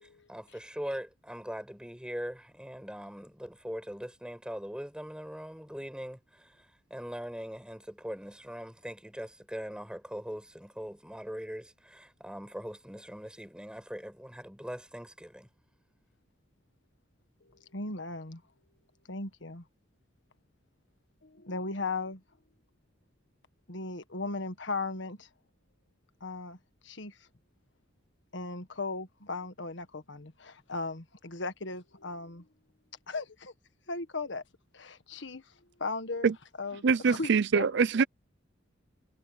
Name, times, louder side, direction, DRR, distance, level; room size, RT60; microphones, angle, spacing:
voice 1, 0.3-6.6 6.9-15.5, equal, 5° right, 5.8 m, -41 dB
voice 2, 17.5-18.4 19.1-19.6 21.2-22.2 23.7-25.3 26.2-26.6 26.8-27.2 28.3-32.4 33.1-33.5 33.9-34.4 34.7-35.4 35.8-36.3 36.6-37.7, left 3 dB, 65° left, 1.6 m, -37 dB
voice 3, 36.8-38.0, right 5 dB, 65° right, 0.5 m, -24 dB
head